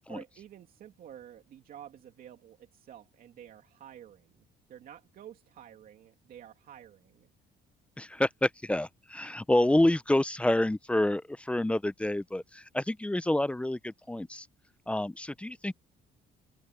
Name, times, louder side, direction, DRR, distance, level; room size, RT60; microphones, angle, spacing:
voice 1, 0.1-7.3, right 10 dB, 60° right, 2.7 m, -50 dB
voice 2, 8.0-14.5 14.9-15.7, left 1 dB, 5° left, 0.6 m, -28 dB
open air
cardioid pair, 110°, 17 cm